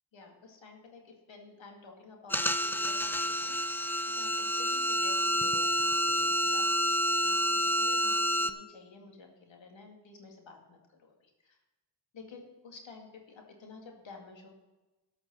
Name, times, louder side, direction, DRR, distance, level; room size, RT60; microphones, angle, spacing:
voice 1, 0.1-11.6 12.1-14.5, left 4 dB, 75° left, 2 dB, 2.2 m, -52 dB
sound 1, 2.3-8.5, equal, 5° left, 0.6 m, -28 dB
12.5 x 5.9 x 6.1 m, 1.1 s
cardioid pair, 50°, 47 cm